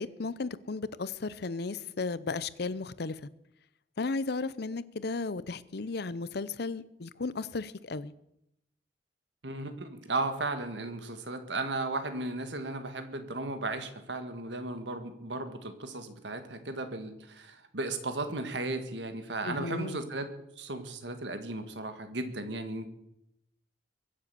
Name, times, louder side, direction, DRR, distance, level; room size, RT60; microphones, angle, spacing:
voice 1, 0.0-3.3 4.0-8.1 19.4-20.0, left 3 dB, 65° left, 0.7 m, -35 dB
voice 2, 9.4-20.3 20.6-22.9, right 2 dB, 75° right, 1.8 m, -35 dB
23.0 x 7.7 x 7.0 m
head